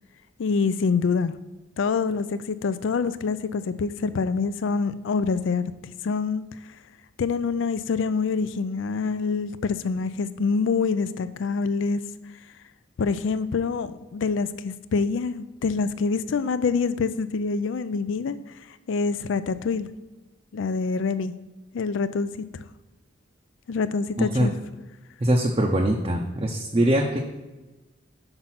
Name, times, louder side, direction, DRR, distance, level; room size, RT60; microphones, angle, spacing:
voice 1, 0.4-1.3 1.8-5.6 6.0-6.5 7.2-12.0 13.0-18.4 18.9-19.9 20.5-21.4 21.7-22.7 23.7-24.5, left 4 dB, 70° left, 14 dB, 0.4 m, -26 dB
voice 2, 24.2-24.5 25.2-27.2, right 1 dB, 25° right, 0 dB, 0.5 m, -22 dB
5.9 x 5.2 x 5.7 m, 1.1 s
head